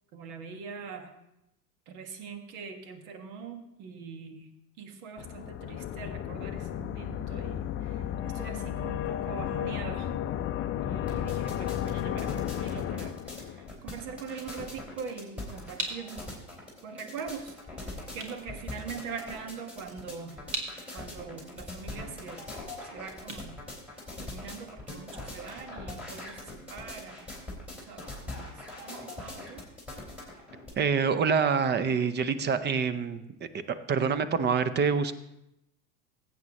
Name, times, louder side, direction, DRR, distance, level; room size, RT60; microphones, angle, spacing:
voice 1, 0.1-1.1 1.9-4.5 4.8-10.1 10.8-16.3 16.8-20.4 20.9-22.4 22.8-23.5 24.2-27.3 27.7-29.6, right 5 dB, 60° right, 6 dB, 1.7 m, -42 dB
sound 1, 5.2-13.7, left 11 dB, 30° left, 0.5 m, -33 dB
sound 2, 11.1-30.7, left 2 dB, ahead, 4.0 m, -42 dB
sound 3, 15.7-24.5, right 2 dB, 40° right, 2.1 m, -43 dB
voice 2, 30.8-35.1, right 6 dB, 20° right, 13 dB, 0.6 m, -26 dB
15.5 x 8.5 x 3.0 m, 0.85 s
hypercardioid pair, 100°, 48 cm